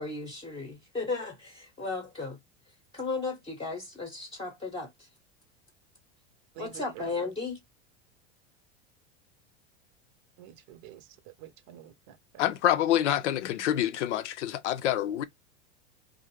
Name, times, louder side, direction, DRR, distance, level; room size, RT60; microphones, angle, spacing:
voice 1, 0.0-2.4 2.9-5.1 6.6-7.6, left 3 dB, 15° left, 0.7 m, -35 dB
voice 2, 6.6-7.1 10.4-11.0 11.4-12.5, right 12 dB, 50° right, 0.7 m, -47 dB
voice 3, 12.4-15.2, left 11 dB, 90° left, 0.5 m, -27 dB
2.5 x 2.0 x 3.0 m
hypercardioid pair, 100°, 35 cm